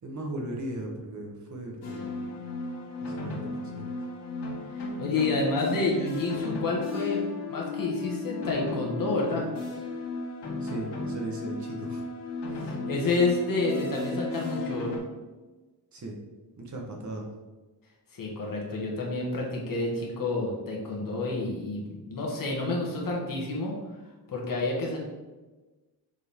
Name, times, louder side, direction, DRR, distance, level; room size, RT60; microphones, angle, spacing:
voice 1, 0.0-2.4 3.0-3.9 10.6-12.0 15.9-16.2 16.6-17.3, right 1 dB, 45° right, 1 dB, 1.1 m, -37 dB
sound 1, 1.8-15.0, left 3 dB, 80° left, 1.9 m, -35 dB
voice 2, 5.0-9.5 12.5-15.0 18.1-23.7 24.3-25.0, left 2 dB, 55° left, -2 dB, 1.7 m, -29 dB
7.0 x 4.4 x 3.5 m, 1.2 s
wide cardioid pair, 155°, 40 cm